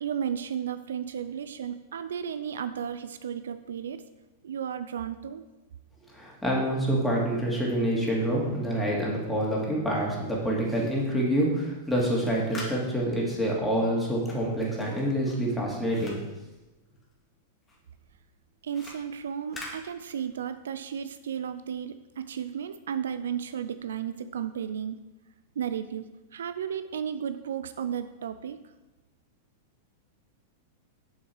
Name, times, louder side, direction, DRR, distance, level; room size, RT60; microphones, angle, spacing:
voice 1, 0.0-4.0 4.4-5.4 18.6-25.0 25.6-26.1 26.3-28.6, right 8 dB, 70° right, 11 dB, 0.4 m, -34 dB
voice 2, 6.1-16.2, right 1 dB, 5° left, -4 dB, 2.9 m, -27 dB
sound 1, 11.9-17.3 17.6-20.6, left 1 dB, 20° left, 2.5 m, -46 dB
7.3 x 7.2 x 4.7 m, 1.1 s
figure-of-eight pair, 95°, 0 cm